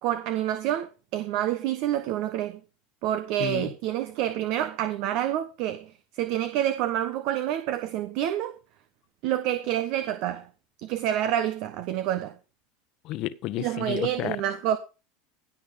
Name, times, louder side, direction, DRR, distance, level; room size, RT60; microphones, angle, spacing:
voice 1, 0.0-2.6 3.0-8.5 9.2-10.5 10.8-12.3 13.6-14.8, right 12 dB, 60° right, 1.1 m, -28 dB
voice 2, 3.4-3.7 13.0-14.4, left 15 dB, 55° left, 1.0 m, -31 dB
16.5 x 6.0 x 5.2 m
hypercardioid pair, 90°, 0 cm